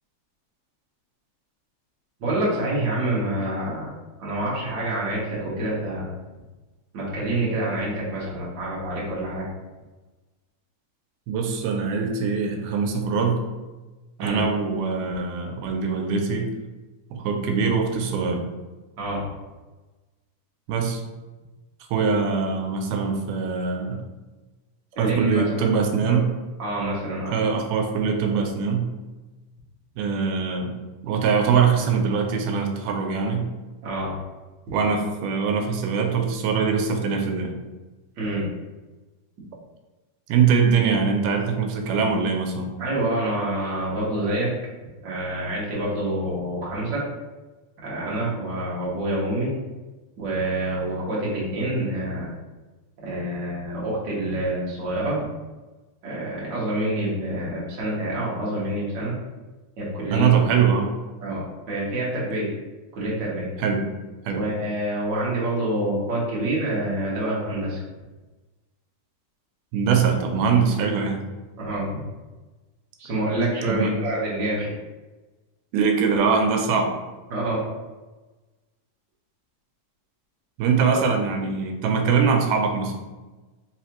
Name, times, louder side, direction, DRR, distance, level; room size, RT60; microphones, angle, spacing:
voice 1, 2.2-3.9 4.2-6.1 6.9-9.5 14.2-14.4 19.0-19.3 25.0-25.7 26.1-26.2 26.6-27.3 33.8-34.2 34.7-34.8 38.2-38.5 42.8-44.6 45.0-47.0 47.8-49.5 50.2-52.3 53.0-55.2 56.0-59.1 59.8-60.3 61.2-62.5 62.9-63.5 64.3-67.8 71.6-72.1 73.0-74.7 77.3-77.6 80.9-81.0, right 1 dB, 55° right, -6 dB, 1.3 m, -27 dB
voice 2, 11.3-13.4 14.2-16.5 17.1-18.4 20.7-21.0 21.9-24.0 25.0-26.3 27.3-28.9 30.0-30.8 31.0-33.5 34.7-37.5 40.3-42.7 60.1-60.9 63.6-63.8 64.3-64.4 69.7-71.2 73.7-74.0 75.7-76.9 80.6-82.9, right 5 dB, 85° right, 3 dB, 2.1 m, -22 dB
4.7 x 3.2 x 2.9 m, 1.2 s
omnidirectional pair, 3.6 m